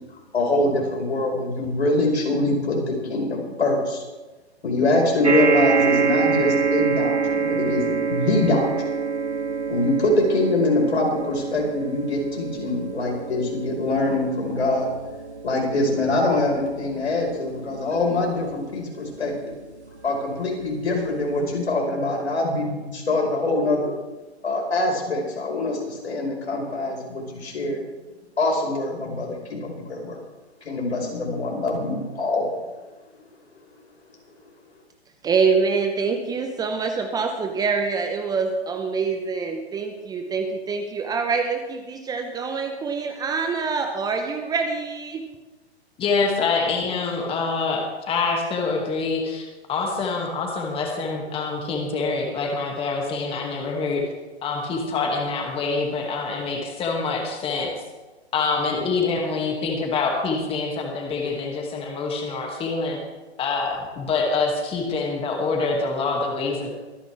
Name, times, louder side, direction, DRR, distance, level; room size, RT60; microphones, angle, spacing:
voice 1, 0.3-4.0 4.6-8.7 9.7-14.9 15.4-19.5 20.0-23.9 24.4-27.8 28.4-30.2 30.6-32.5, left 2 dB, 75° left, 0 dB, 5.2 m, -24 dB
sound 1, 5.2-19.8 20.5-20.6 20.9-21.0, right 5 dB, 85° right, 2.2 m, -26 dB
voice 2, 35.2-45.2, right 5 dB, 10° right, 5 dB, 0.9 m, -25 dB
voice 3, 46.0-54.0 54.4-57.7 58.3-63.0 63.4-66.7, left 4 dB, 15° left, 1 dB, 2.3 m, -25 dB
24.0 x 10.0 x 3.5 m, 1.2 s
figure-of-eight pair, 120°, 33 cm